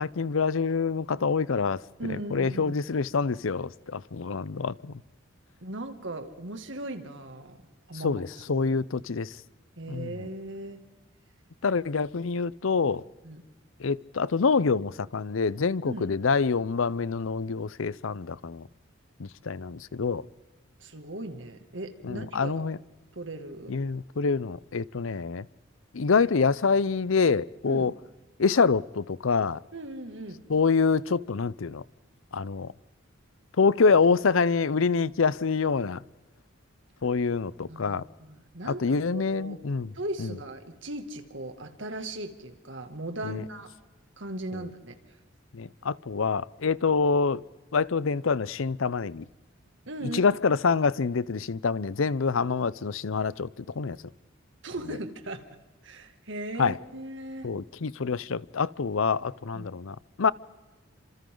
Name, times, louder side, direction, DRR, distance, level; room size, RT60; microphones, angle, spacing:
voice 1, 0.0-4.9 8.0-9.3 9.9-10.1 11.6-13.0 13.8-18.7 19.2-20.2 22.0-22.8 23.7-25.4 25.9-27.9 28.4-29.6 30.5-31.8 32.3-32.7 33.6-36.0 37.0-38.0 38.6-39.9 40.2-40.3 43.2-43.4 45.5-47.4 47.7-49.2 50.1-54.0 56.6-56.8 57.4-60.3, left 5 dB, 75° left, 0.6 m, -26 dB
voice 2, 2.0-2.8 5.6-7.6 7.9-8.7 9.8-10.8 13.2-13.4 15.9-16.1 20.8-22.7 23.1-23.8 27.7-27.9 29.7-30.4 37.7-39.6 39.9-43.8 44.2-45.0 49.8-50.2 54.6-55.5 55.8-57.5 59.5-59.7, right 1 dB, 65° right, 2.3 m, -38 dB
30.0 x 26.5 x 3.9 m
head